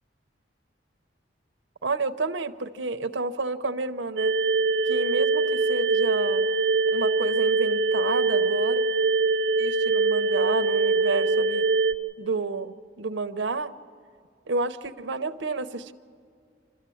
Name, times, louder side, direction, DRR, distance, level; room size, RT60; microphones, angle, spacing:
voice 1, 1.8-4.3 4.8-6.5 6.9-8.8 9.6-11.7 12.2-13.7 14.5-15.9, right 3 dB, 90° right, 8 dB, 0.8 m, -30 dB
sound 1, 4.2-11.9, right 3 dB, 65° right, 0.6 m, -23 dB
28.0 x 13.0 x 8.5 m, 2.3 s
head